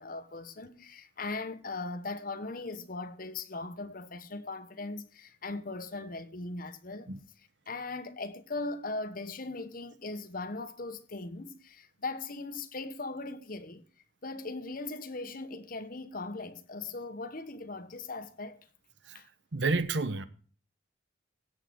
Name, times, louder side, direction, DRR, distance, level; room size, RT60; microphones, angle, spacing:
voice 1, 0.0-7.1 7.7-13.8 14.2-18.7 19.1-19.3, left 3 dB, 45° left, 1.1 m, -39 dB
voice 2, 19.5-20.2, right 3 dB, 70° right, 1.0 m, -30 dB
16.5 x 6.4 x 4.7 m
head